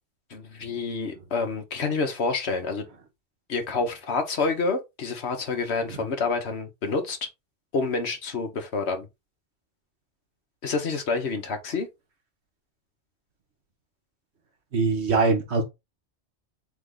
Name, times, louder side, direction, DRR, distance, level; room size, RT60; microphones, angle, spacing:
voice 1, 0.3-2.8 3.5-7.2 7.7-9.1 10.6-11.9, left 4 dB, 70° left, 1.3 m, -28 dB
voice 2, 14.7-15.6, right 4 dB, 70° right, 1.5 m, -23 dB
3.7 x 3.5 x 3.8 m
omnidirectional pair, 1.2 m